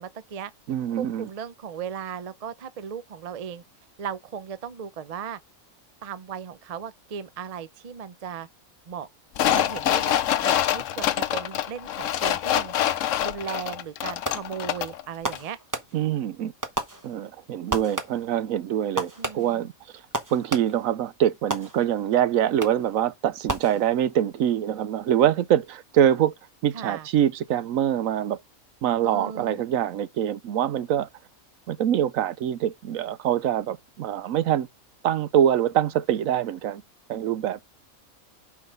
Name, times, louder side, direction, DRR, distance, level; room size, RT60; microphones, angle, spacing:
voice 1, 0.0-0.5 0.9-3.6 4.0-5.4 6.0-8.5 8.9-9.1 9.4-12.7 13.2-15.6 19.2-19.7 26.7-27.1 29.0-29.6, right 7 dB, 45° right, 0.5 m, -36 dB
voice 2, 0.7-1.3 15.9-16.5 17.0-19.7 20.3-26.3 26.6-28.4 28.8-31.1 31.7-34.7 35.0-36.8 37.1-37.7, right 10 dB, 75° right, 1.0 m, -24 dB
sound 1, 9.4-15.0 15.3-15.4, left 11 dB, 70° left, 0.9 m, -25 dB
Fireworks, 14.2-14.7 15.2-16.2 16.6-17.4 17.7-18.4 19.0-20.9 21.5-22.1 22.6-23.0 23.5-24.2, right 2 dB, 15° right, 0.9 m, -33 dB
6.0 x 4.7 x 5.2 m
omnidirectional pair, 1.5 m